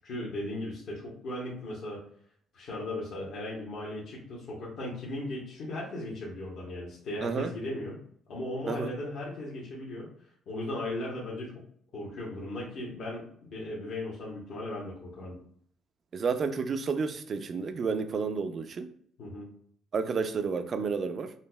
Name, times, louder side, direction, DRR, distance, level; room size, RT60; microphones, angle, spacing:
voice 1, 0.0-2.0 2.5-8.0 8.3-10.1 10.5-11.5 11.9-15.4 19.2-19.5, left 1 dB, 65° left, 0.9 m, -37 dB
voice 2, 7.2-7.5 8.7-8.9 16.1-18.9 19.9-21.3, right 5 dB, 45° right, 0.4 m, -31 dB
5.3 x 2.0 x 2.2 m
cardioid pair, 85°, 0 cm